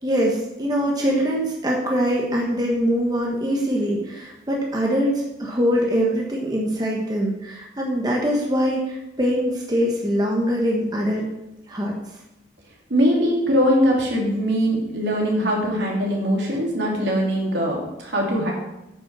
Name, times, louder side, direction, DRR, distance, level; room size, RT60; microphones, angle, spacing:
voice 1, 0.0-11.3 11.7-12.0, equal, 20° right, -2 dB, 1.2 m, -23 dB
voice 2, 12.9-18.5, equal, 70° right, -2 dB, 2.8 m, -21 dB
8.8 x 6.2 x 6.0 m, 0.94 s
head